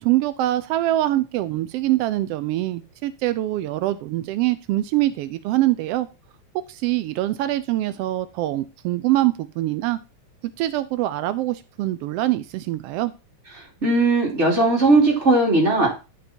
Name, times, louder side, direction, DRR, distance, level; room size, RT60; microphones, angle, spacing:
voice 1, 0.0-6.1 6.7-10.0 10.6-13.1, right 15 dB, 90° right, 14 dB, 1.3 m, -24 dB
voice 2, 13.6-15.9, right 2 dB, 25° right, -1 dB, 3.2 m, -18 dB
10.5 x 5.3 x 4.3 m, 0.30 s
omnidirectional pair, 3.3 m